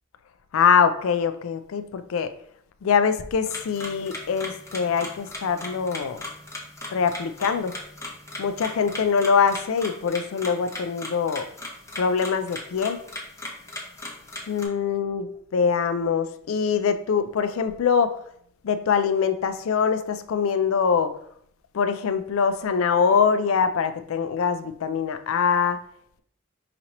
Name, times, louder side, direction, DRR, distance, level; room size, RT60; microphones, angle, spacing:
voice 1, 0.5-2.3 2.8-6.2 6.9-7.8 8.4-11.5 12.0-13.0 14.5-18.2 18.6-21.2 21.7-25.8, left 6 dB, 75° left, 0.4 m, -23 dB
sound 1, 3.5-14.7, left 1 dB, 15° left, 0.7 m, -38 dB
5.0 x 2.9 x 2.9 m
head